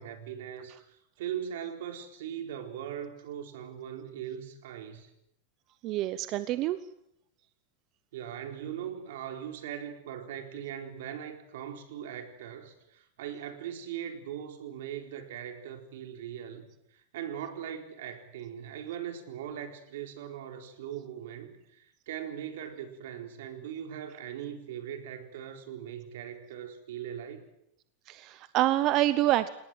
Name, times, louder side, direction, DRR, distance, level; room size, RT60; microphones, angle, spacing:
voice 1, 0.0-5.1 8.1-27.5, right 9 dB, 75° right, 5 dB, 4.2 m, -40 dB
voice 2, 5.8-6.8 28.1-29.5, right 15 dB, 40° right, 14 dB, 0.8 m, -26 dB
29.0 x 19.0 x 7.6 m, 0.77 s
supercardioid pair, 155°, 0 cm